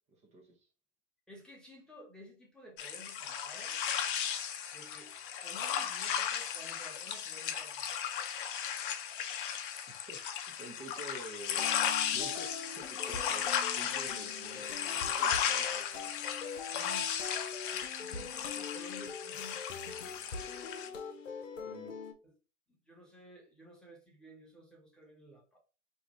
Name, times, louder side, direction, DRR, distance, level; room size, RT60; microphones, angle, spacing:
voice 1, 0.1-0.7 10.1-10.2 10.5-11.6 12.1-13.4 13.8-16.1 21.6-22.0, right 1 dB, 15° right, 0.5 m, -49 dB
voice 2, 1.3-3.8 4.7-5.1 5.4-7.9 16.7-17.1 17.7-19.6 22.2-22.3 22.7-25.6, equal, ahead, 0.9 m, -53 dB
sound 1, 2.8-20.9, left 8 dB, 45° left, 0.6 m, -35 dB
sound 2, 11.6-22.1, left 5 dB, 80° left, 0.7 m, -43 dB
2.6 x 2.5 x 3.0 m
figure-of-eight pair, 105°, 38 cm